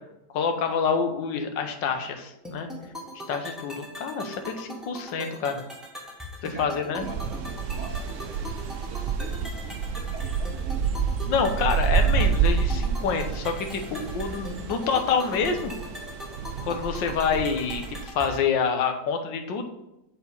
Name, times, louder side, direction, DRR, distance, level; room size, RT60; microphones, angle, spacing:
voice 1, 0.3-2.7 3.3-5.6 6.4-7.1 11.2-15.7 16.7-19.7, left 6 dB, 90° left, 6 dB, 1.7 m, -27 dB
sound 1, 2.4-18.4, equal, ahead, 1.2 m, -41 dB
voice 2, 6.5-11.0, right 2 dB, 45° right, 3 dB, 1.3 m, -43 dB
sound 2, 7.0-18.1, right 6 dB, 65° right, 0.8 m, -28 dB
7.7 x 4.4 x 5.4 m, 0.89 s
omnidirectional pair, 1.9 m